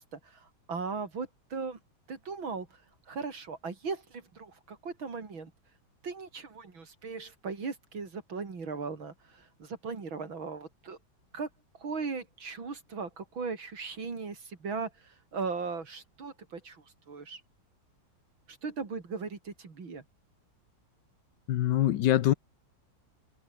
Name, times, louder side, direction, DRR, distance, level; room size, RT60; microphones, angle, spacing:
voice 1, 0.0-1.8 2.1-2.7 3.1-5.5 6.0-11.0 11.3-11.5 11.8-17.4 18.5-20.0, right 4 dB, 90° right, 4.3 m, -38 dB
voice 2, 21.5-22.3, left 12 dB, 70° left, 1.3 m, -24 dB
omnidirectional pair, 2.1 m